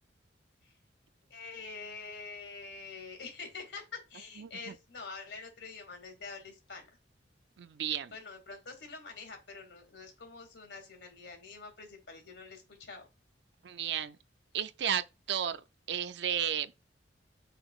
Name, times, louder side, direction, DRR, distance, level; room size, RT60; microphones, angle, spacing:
voice 1, 1.3-6.9 8.1-13.1, left 4 dB, 75° left, 2.3 m, -46 dB
voice 2, 4.4-4.7 7.6-8.1 13.6-14.2 14.5-16.7, right 9 dB, 65° right, 0.4 m, -33 dB
6.8 x 5.8 x 2.4 m
head